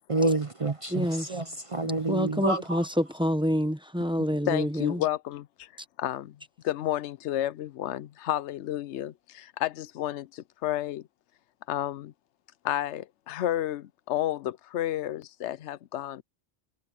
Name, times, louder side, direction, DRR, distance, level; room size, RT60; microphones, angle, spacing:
voice 1, 0.1-2.8, right 2 dB, 35° right, 0.6 m, -28 dB
voice 2, 0.9-1.4 2.1-5.0, equal, 5° right, 1.0 m, -27 dB
voice 3, 4.5-5.7 6.0-6.4 6.6-11.1 11.7-12.1 12.6-16.2, left 13 dB, 90° left, 0.9 m, -31 dB
omnidirectional pair, 1.1 m